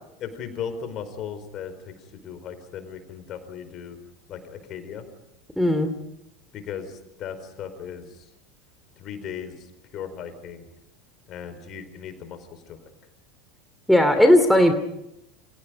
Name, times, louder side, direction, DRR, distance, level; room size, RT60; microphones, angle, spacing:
voice 1, 0.2-1.7 2.1-4.0 4.3-5.0 6.5-8.2 9.0-9.7 9.9-10.6 11.3-12.8, left 7 dB, 40° left, 9 dB, 4.8 m, -37 dB
voice 2, 5.6-5.9 13.9-14.7, left 1 dB, ahead, 6 dB, 2.8 m, -16 dB
30.0 x 27.0 x 5.3 m, 0.83 s
figure-of-eight pair, 80°, 0 cm